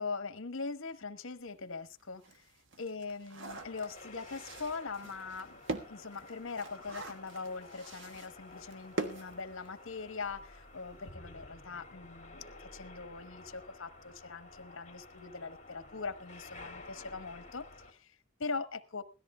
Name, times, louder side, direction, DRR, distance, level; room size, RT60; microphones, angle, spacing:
voice 1, 0.0-2.4 2.8-5.6 5.9-19.0, left 4 dB, 65° left, 1.1 m, -41 dB
sound 1, 1.4-1.5 2.0-10.1 10.3-10.4 10.7-11.0, right 2 dB, 60° right, 1.4 m, -44 dB
sound 2, 3.5-17.9, left 2 dB, 35° left, 2.6 m, -52 dB
17.5 x 13.5 x 3.4 m
head